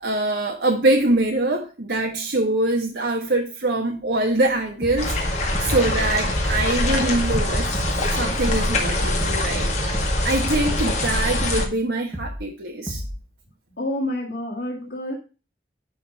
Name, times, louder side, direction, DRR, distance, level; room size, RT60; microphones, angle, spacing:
voice 1, 0.0-5.2 5.6-7.8 8.1-9.7 10.2-13.0, right 2 dB, 75° right, 0 dB, 1.3 m, -23 dB
sound 1, 4.8-5.2 5.5-5.9 6.3-6.7 7.0-7.4 7.7-8.1 8.5-8.8 9.2-9.6 9.9-10.3 10.7-11.0 11.4-11.8 12.1-12.5 12.9-13.3, equal, 15° right, 1.5 m, -33 dB
sound 2, 5.0-11.6, left 1 dB, 40° left, 2.0 m, -23 dB
voice 2, 13.8-15.1, left 1 dB, 75° left, -4 dB, 2.0 m, -28 dB
11.0 x 3.9 x 6.3 m, 0.34 s
head